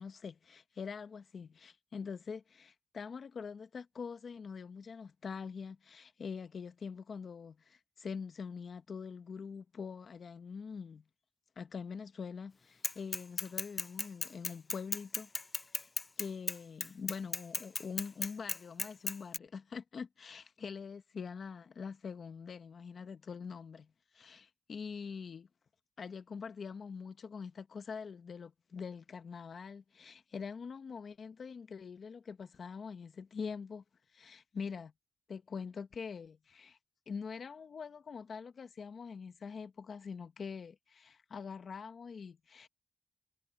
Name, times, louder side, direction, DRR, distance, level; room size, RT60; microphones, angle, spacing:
voice 1, 0.0-11.0 11.6-15.3 15.7-15.9 16.2-25.5 26.0-33.8 34.1-34.9 35.3-36.8 37.1-42.7, left 5 dB, 65° left, 0.9 m, -44 dB
Bicycle / Mechanisms, 12.8-19.4, left 3 dB, 35° left, 0.3 m, -36 dB
cardioid pair, 65°, 0 cm